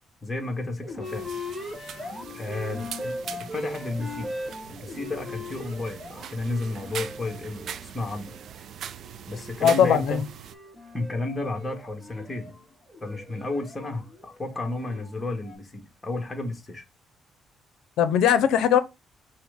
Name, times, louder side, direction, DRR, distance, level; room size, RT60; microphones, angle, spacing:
voice 1, 0.2-1.4 2.3-3.2 3.5-4.3 4.7-8.3 9.3-10.2 10.9-12.5 13.0-16.8, left 2 dB, 20° left, 1.3 m, -32 dB
sound 1, 0.8-8.5 8.9-15.5, left 1 dB, ahead, 1.9 m, -40 dB
sound 2, 1.0-10.5, right 8 dB, 65° right, 0.4 m, -41 dB
voice 2, 9.6-10.2 18.0-18.8, left 8 dB, 85° left, 0.5 m, -19 dB
5.9 x 2.1 x 3.6 m
cardioid pair, 90°, 0 cm